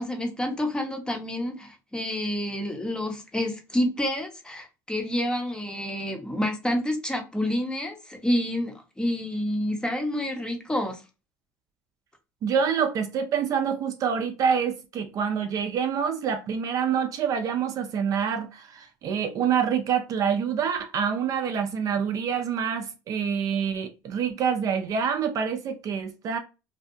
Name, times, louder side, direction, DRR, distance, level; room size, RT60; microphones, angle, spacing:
voice 1, 0.0-11.0, left 1 dB, 10° left, 0.7 m, -28 dB
voice 2, 12.4-26.4, right 7 dB, 45° right, 0.4 m, -26 dB
2.6 x 2.2 x 2.6 m
supercardioid pair, 105°, 8 cm